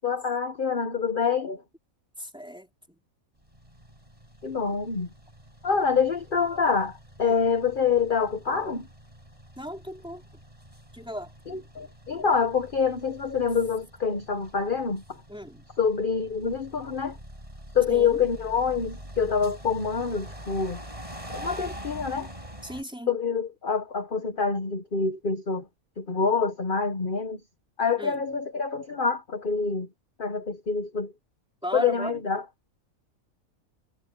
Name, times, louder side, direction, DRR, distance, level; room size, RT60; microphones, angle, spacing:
voice 1, 0.0-1.6 4.4-5.1 5.6-8.9 11.5-15.0 15.8-17.2 17.7-20.8 21.3-22.3 23.1-25.6 26.0-27.4 27.8-29.9 30.2-31.1 31.7-32.4, left 5 dB, 40° left, 1.3 m, -26 dB
voice 2, 2.2-2.7 7.2-7.4 9.6-10.2 10.9-11.3 15.3-15.7 17.9-18.2 22.6-23.2 28.0-28.3 31.6-32.2, equal, 5° right, 3.8 m, -36 dB
sound 1, 3.4-22.8, right 1 dB, 25° right, 8.0 m, -45 dB
omnidirectional pair, 1.5 m